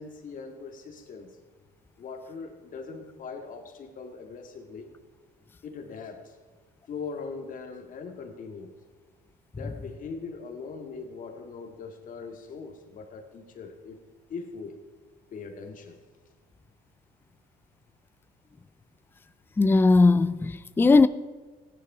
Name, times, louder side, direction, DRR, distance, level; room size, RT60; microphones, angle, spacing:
voice 1, 0.0-1.4 2.0-5.0 5.6-6.4 6.9-8.8 9.6-14.0 14.3-14.8 15.3-16.0, left 4 dB, 50° left, 2.0 m, -40 dB
voice 2, 19.6-21.1, left 3 dB, 10° left, 0.4 m, -19 dB
16.0 x 10.0 x 5.0 m
cardioid pair, 110°, 17 cm